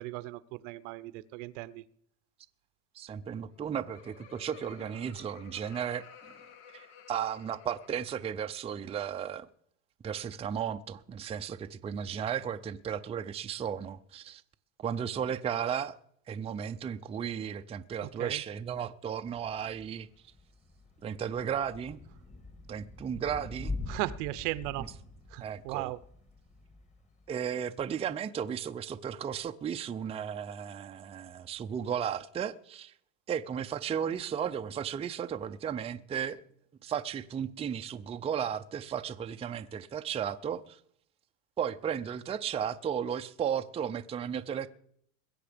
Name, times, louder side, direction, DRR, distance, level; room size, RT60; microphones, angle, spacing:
voice 1, 0.0-1.8 18.0-18.4 23.9-24.9 25.3-26.0, right 18 dB, 75° right, 0.8 m, -37 dB
voice 2, 3.0-6.1 6.7-9.5 10.0-14.4 14.8-16.0 16.3-20.1 21.0-22.0 22.7-23.8 24.8-24.9 25.4-25.9 27.3-32.9 33.3-36.4 36.8-40.8 41.6-44.7, right 8 dB, 15° right, 0.5 m, -34 dB
Laughter, 3.4-8.7, left 7 dB, 80° left, 1.9 m, -54 dB
Thunder / Rain, 19.3-27.5, left 3 dB, 20° left, 1.5 m, -44 dB
21.5 x 7.9 x 5.1 m
supercardioid pair, 135°, 38 cm